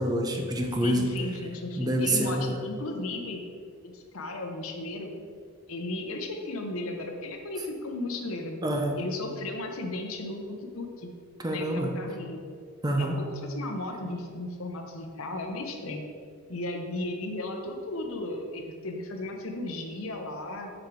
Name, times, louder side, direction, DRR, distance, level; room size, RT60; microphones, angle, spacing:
voice 1, 0.0-1.1 1.8-2.6 8.6-9.0 11.4-11.9 12.8-13.2, right 1 dB, 20° right, 3 dB, 0.7 m, -27 dB
voice 2, 0.8-3.4 3.8-5.1 5.7-8.6 9.0-11.1 11.5-12.4 13.0-16.0 16.5-20.7, left 2 dB, 65° left, 2 dB, 1.0 m, -35 dB
7.3 x 4.9 x 4.7 m, 2.2 s
head